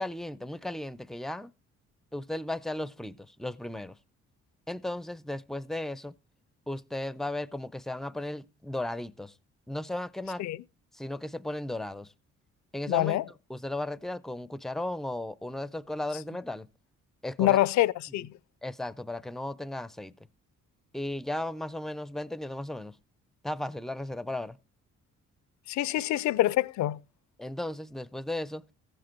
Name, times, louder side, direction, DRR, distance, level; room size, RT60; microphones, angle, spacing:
voice 1, 0.0-1.5 2.1-4.0 4.7-6.1 6.7-9.3 9.7-10.5 10.9-12.1 12.7-13.2 13.5-16.7 17.2-17.6 18.6-20.1 20.9-23.0 23.4-24.6 27.4-28.6, left 1 dB, ahead, 0.5 m, -35 dB
voice 2, 12.9-13.2 17.4-18.3 25.7-27.0, left 15 dB, 70° left, 0.5 m, -25 dB
15.0 x 7.7 x 4.4 m
cardioid pair, 90°, 30 cm